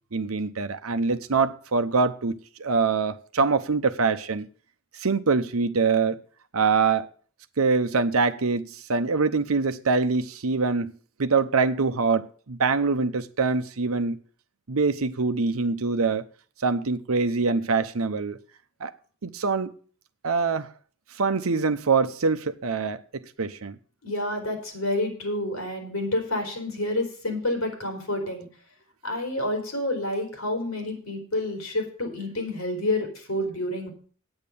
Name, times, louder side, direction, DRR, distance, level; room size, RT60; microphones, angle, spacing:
voice 1, 0.1-4.5 5.0-6.2 6.5-7.1 7.6-10.9 11.2-14.2 14.7-16.3 16.6-18.4 18.8-18.9 19.2-19.7 20.2-20.7 21.2-23.8, right 4 dB, 80° right, 0.8 m, -24 dB
voice 2, 24.0-28.5 29.0-33.9, left 1 dB, 75° left, 4.0 m, -29 dB
8.8 x 8.8 x 7.0 m
head